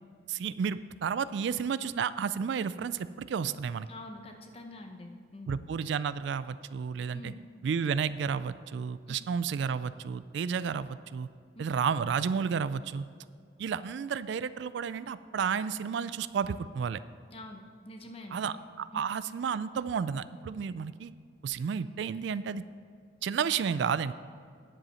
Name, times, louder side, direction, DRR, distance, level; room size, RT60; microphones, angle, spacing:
voice 1, 0.3-3.9 5.5-7.3 7.6-11.3 11.6-13.0 13.6-17.0 18.3-21.1 21.4-22.6 23.2-24.1, right 6 dB, 65° right, 15 dB, 0.3 m, -32 dB
voice 2, 3.9-5.6 7.1-7.4 9.1-9.2 11.5-11.6 17.3-18.5 18.9-19.0, left 1 dB, 30° left, 4 dB, 1.0 m, -46 dB
10.0 x 7.8 x 5.6 m, 2.3 s
head